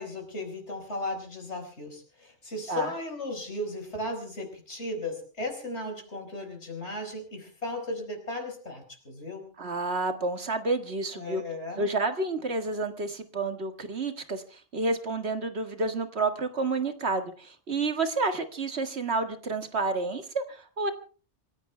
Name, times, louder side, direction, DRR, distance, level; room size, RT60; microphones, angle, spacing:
voice 1, 0.0-9.5 11.1-11.9, left 1 dB, 85° left, 3 dB, 5.1 m, -36 dB
voice 2, 9.6-11.4 11.8-20.9, right 3 dB, 70° right, 7 dB, 2.0 m, -30 dB
27.0 x 15.5 x 3.3 m, 0.38 s
omnidirectional pair, 1.1 m